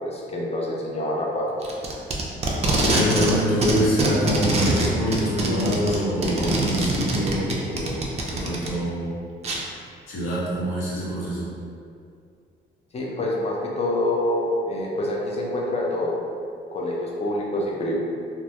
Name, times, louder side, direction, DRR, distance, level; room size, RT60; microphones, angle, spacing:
voice 1, 0.0-1.5 12.9-16.1 16.7-17.9, left 1 dB, 30° left, -3 dB, 0.5 m, -26 dB
Packing tape duct tape, 1.6-3.4 3.6-8.7 9.4-9.6, right 2 dB, 35° right, 0.4 m, -23 dB
voice 2, 2.8-9.1 10.1-11.5, equal, 85° left, -9 dB, 0.9 m, -25 dB
2.1 x 2.0 x 2.8 m, 2.3 s
cardioid pair, 90°, 20 cm